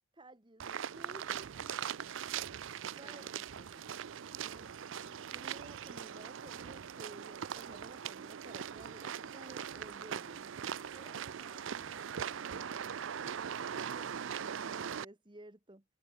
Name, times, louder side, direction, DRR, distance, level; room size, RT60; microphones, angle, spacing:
voice 1, 0.1-1.8 2.9-3.3 4.4-4.7 5.0-10.5 14.6-15.8, right 1 dB, 20° right, 1.4 m, -54 dB
sound 1, 0.6-15.0, right 8 dB, 60° right, 0.4 m, -41 dB
voice 2, 1.5-1.8 3.0-3.9 10.9-14.2, left 1 dB, 10° left, 2.3 m, -63 dB
head